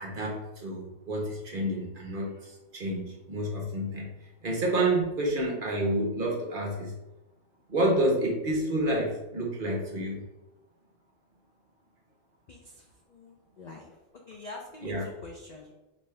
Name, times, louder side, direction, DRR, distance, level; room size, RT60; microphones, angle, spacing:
voice 1, 0.0-4.1 4.4-6.9 7.7-10.2 14.8-15.0, right 1 dB, 45° right, -2 dB, 1.1 m, -29 dB
voice 2, 12.5-14.0 14.3-15.7, left 3 dB, 60° left, 1 dB, 0.4 m, -45 dB
5.3 x 2.7 x 3.2 m, 1.0 s
omnidirectional pair, 1.3 m